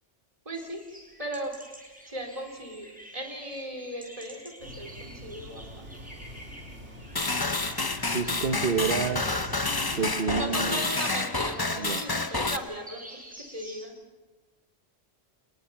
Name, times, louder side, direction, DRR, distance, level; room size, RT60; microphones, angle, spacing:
voice 1, 0.4-0.8 1.2-1.6 2.1-2.9 3.1-5.9 10.3-14.0, right 1 dB, 30° right, 3 dB, 4.2 m, -37 dB
sound 1, 0.5-13.9, equal, 5° right, 6.8 m, -50 dB
sound 2, 4.6-10.1, equal, 85° right, 3.3 m, -44 dB
sound 3, 7.1-12.6, left 3 dB, 20° left, 0.8 m, -29 dB
voice 2, 8.1-9.7 9.9-10.9 11.8-12.0, right 5 dB, 55° right, 6 dB, 1.3 m, -29 dB
28.5 x 20.5 x 5.9 m, 1.2 s
omnidirectional pair, 1.2 m